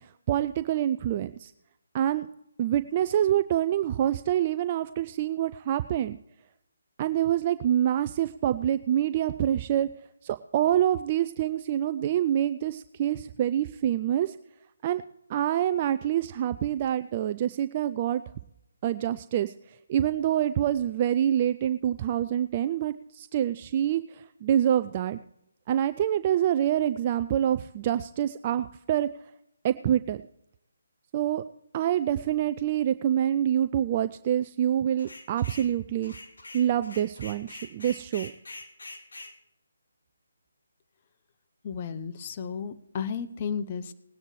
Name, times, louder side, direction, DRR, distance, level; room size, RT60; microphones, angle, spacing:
voice 1, 0.0-1.5 1.9-2.3 2.6-6.2 7.0-9.9 10.2-14.4 14.8-15.0 15.3-18.2 18.8-25.2 25.7-29.1 29.6-30.2 31.1-31.4 31.7-36.1 36.5-38.3, right 11 dB, 30° right, 11 dB, 0.4 m, -26 dB
sound 1, 35.0-35.7 36.0-39.3, left 2 dB, 70° left, 2.3 m, -44 dB
voice 2, 41.6-43.9, left 6 dB, 35° left, 11 dB, 0.9 m, -33 dB
20.0 x 9.9 x 3.2 m, 0.81 s
figure-of-eight pair, 150°, 0 cm